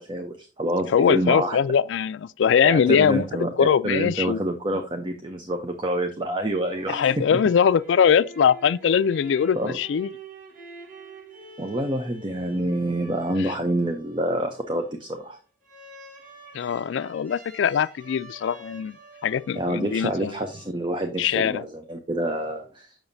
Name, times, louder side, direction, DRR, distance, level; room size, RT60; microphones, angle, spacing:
voice 1, 0.0-1.6 2.6-7.4 9.5-9.8 11.6-15.4 19.5-23.0, right 1 dB, 25° right, 0.6 m, -27 dB
voice 2, 0.9-3.2 3.6-4.4 6.9-10.1 16.5-19.0 19.2-20.3 21.2-21.6, left 7 dB, 75° left, 0.3 m, -21 dB
sound 1, 6.4-21.1, right 2 dB, 45° right, 1.6 m, -47 dB
6.9 x 6.1 x 2.6 m
head